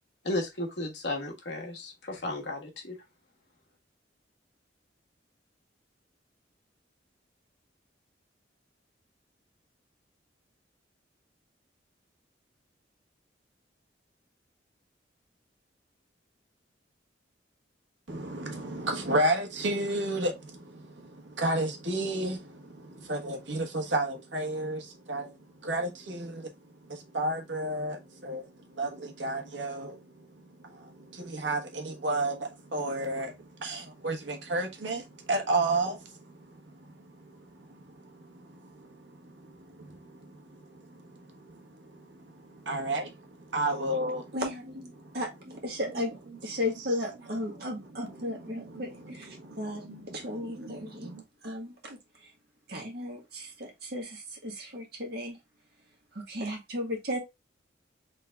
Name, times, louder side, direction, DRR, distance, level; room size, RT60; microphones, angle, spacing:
voice 1, 0.2-3.0, left 1 dB, 65° left, 1.4 m, -34 dB
voice 2, 18.1-25.4 25.6-26.5 26.8-44.4 45.0-45.2 47.5-51.2, right 2 dB, 85° right, 1.2 m, -33 dB
voice 3, 44.3-44.6 45.1-45.3 45.6-46.1 46.4-49.8 50.1-51.1 51.4-52.3 52.7-55.4 56.1-57.2, left 1 dB, 55° right, 1.6 m, -35 dB
3.7 x 3.5 x 3.3 m
head